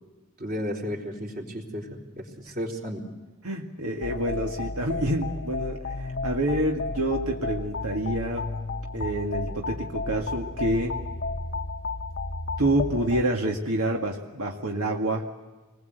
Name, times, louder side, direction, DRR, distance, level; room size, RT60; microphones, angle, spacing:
voice 1, 0.4-3.0, equal, 40° right, 0 dB, 3.7 m, -33 dB
voice 2, 3.4-8.5 8.9-11.0 12.6-15.3, right 1 dB, 75° right, 1 dB, 1.9 m, -27 dB
sound 1, 4.0-13.2, left 3 dB, 50° left, 0.9 m, -33 dB
27.0 x 20.5 x 8.1 m, 1.3 s
head